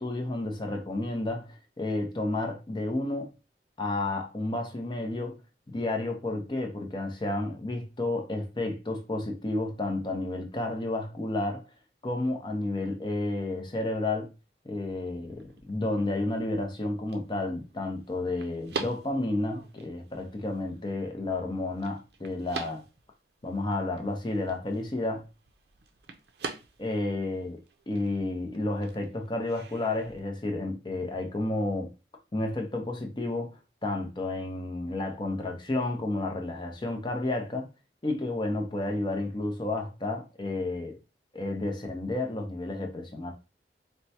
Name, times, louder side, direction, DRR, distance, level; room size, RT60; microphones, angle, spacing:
voice 1, 0.0-3.3 3.8-5.4 5.7-11.6 12.0-14.3 14.6-22.8 23.4-25.2 26.8-27.6 27.9-31.9 32.3-37.7 38.0-40.9 41.3-43.3, left 2 dB, 25° left, 0.6 m, -31 dB
sound 1, 14.7-30.2, right 4 dB, 70° right, 0.5 m, -45 dB
4.3 x 2.1 x 2.8 m
head